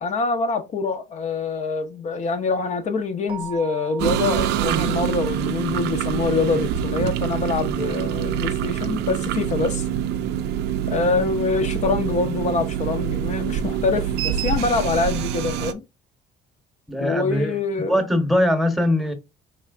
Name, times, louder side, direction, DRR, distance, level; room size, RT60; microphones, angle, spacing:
voice 1, 0.0-9.9 10.9-15.8 17.0-17.9, left 4 dB, 45° left, 0.5 m, -25 dB
Keyboard (musical), 3.3-5.7, right 9 dB, 30° right, 0.5 m, -40 dB
sound 1, 4.0-15.7, right 10 dB, 85° right, 0.4 m, -25 dB
voice 2, 16.9-17.6 17.9-19.1, left 1 dB, ahead, 0.8 m, -21 dB
4.4 x 3.2 x 2.4 m
cardioid pair, 110°, 17 cm